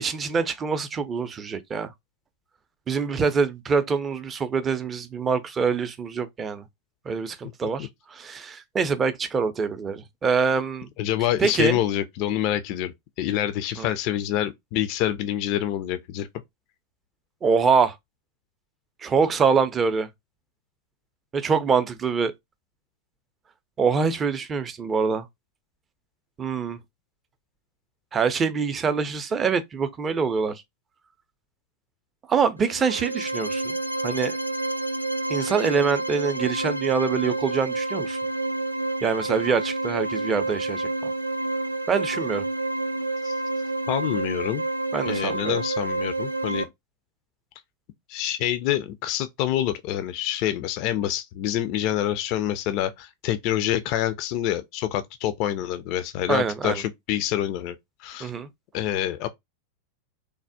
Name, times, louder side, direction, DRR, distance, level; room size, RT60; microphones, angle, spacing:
voice 1, 0.0-1.9 2.9-6.6 7.1-10.9 11.4-11.8 13.8-13.9 17.4-18.0 19.0-20.1 21.3-22.3 23.8-25.3 26.4-26.8 28.1-30.6 32.3-33.7 34.0-34.4 35.3-38.2 39.0-41.1 41.9-42.5 44.9-45.6 56.3-56.8 58.2-58.5, right 5 dB, 20° right, 0.4 m, -25 dB
voice 2, 11.0-12.9 13.2-16.3 43.2-43.3 43.9-44.6 45.0-46.7 48.1-57.7 58.0-58.3 58.7-59.3, left 12 dB, 45° left, 0.3 m, -26 dB
sound 1, 32.6-46.6, right 2 dB, 90° right, 0.3 m, -29 dB
3.2 x 2.0 x 2.6 m
figure-of-eight pair, 90°, 0 cm